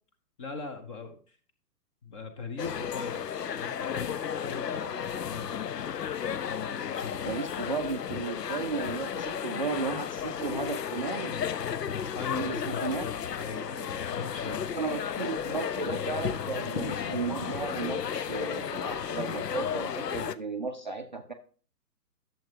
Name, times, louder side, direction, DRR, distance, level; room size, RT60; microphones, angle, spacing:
voice 1, 0.4-1.4 2.0-3.2 3.5-5.6 6.5-7.4 12.1-14.6, left 4 dB, 20° left, 8 dB, 0.8 m, -41 dB
sound 1, 2.6-20.4, left 8 dB, 75° left, 0.7 m, -33 dB
voice 2, 7.2-11.4 12.3-13.0 14.4-21.3, right 4 dB, 30° right, 4 dB, 0.4 m, -34 dB
11.5 x 7.0 x 2.8 m, 0.42 s
figure-of-eight pair, 125°, 48 cm